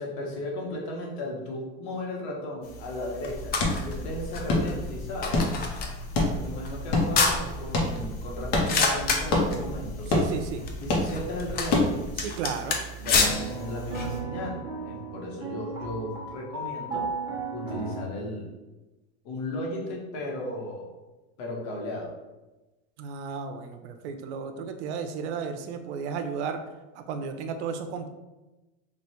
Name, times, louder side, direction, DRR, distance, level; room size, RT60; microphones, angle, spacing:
voice 1, 0.0-5.4 6.1-10.1 10.8-12.1 13.0-17.1 17.5-18.5 19.2-20.9 21.4-22.1, left 1 dB, 70° left, -1 dB, 1.3 m, -35 dB
sound 1, 2.6-14.2, left 3 dB, 30° left, 0.5 m, -31 dB
sound 2, 3.2-12.2, left 2 dB, 50° left, 1.0 m, -29 dB
voice 2, 10.1-10.6 12.2-12.8 23.0-26.6 26.9-28.1, right 6 dB, 85° right, 7 dB, 0.6 m, -33 dB
sound 3, 13.0-18.0, right 3 dB, 15° right, 1.0 m, -35 dB
3.4 x 2.5 x 4.2 m, 1.1 s
supercardioid pair, 140°, 33 cm